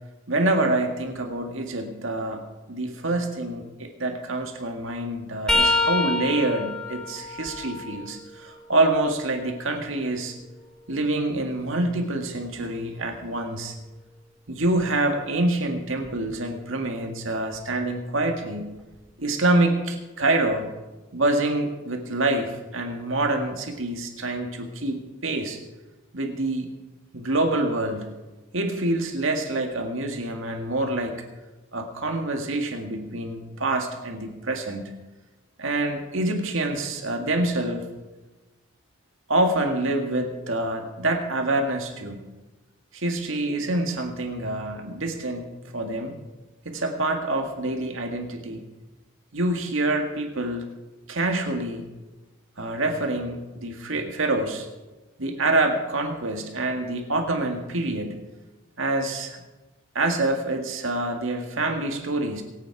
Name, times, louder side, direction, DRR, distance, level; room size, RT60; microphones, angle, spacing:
voice 1, 0.3-10.4 10.9-13.8 14.5-18.8 19.2-20.7 21.1-25.6 26.1-26.7 27.1-28.1 28.5-31.2 31.7-34.9 35.6-37.9 39.3-42.2 42.9-45.5 45.7-46.2 46.7-48.6 49.3-50.7 51.1-51.9 52.6-54.7 55.2-58.2 58.8-59.4 60.0-62.4, right 2 dB, 65° right, 4 dB, 1.9 m, -26 dB
sound 1, 5.5-9.2 9.8-11.7 14.6-14.8 16.0-16.2 17.5-17.6, left 2 dB, 5° left, 1.5 m, -29 dB
22.5 x 8.7 x 4.7 m, 1.1 s
head